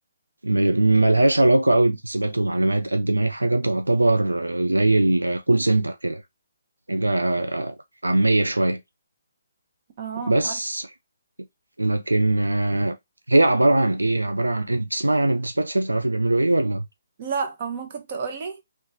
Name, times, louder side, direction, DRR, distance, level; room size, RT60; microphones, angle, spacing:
voice 1, 0.4-6.2 6.9-7.7 8.0-8.8 10.3-10.9 11.8-12.9 13.3-16.9, right 2 dB, 90° right, 0.4 m, -21 dB
voice 2, 10.0-10.6 17.2-18.6, right 5 dB, 40° right, 0.9 m, -30 dB
3.1 x 3.0 x 2.8 m
figure-of-eight pair, 140°, 0 cm